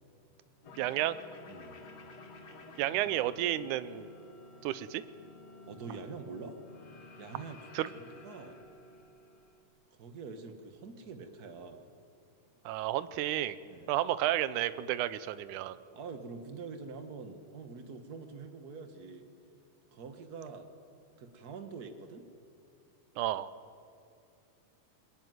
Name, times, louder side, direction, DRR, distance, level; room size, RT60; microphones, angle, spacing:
sound 1, 0.6-9.6, left 3 dB, 55° left, 3.0 m, -52 dB
voice 1, 0.8-1.2 2.8-4.1 4.6-5.0 7.7-7.9 12.7-13.6 13.9-15.8 23.2-23.5, right 13 dB, 75° right, 14 dB, 2.1 m, -31 dB
voice 2, 1.5-1.8 3.0-3.1 5.6-6.6 7.2-7.7 7.9-8.6 9.9-11.8 13.6-13.9 15.9-19.3 19.9-20.7 21.2-22.3, right 4 dB, 45° right, 7 dB, 1.3 m, -45 dB
22.0 x 21.5 x 9.4 m, 2.5 s
omnidirectional pair, 3.8 m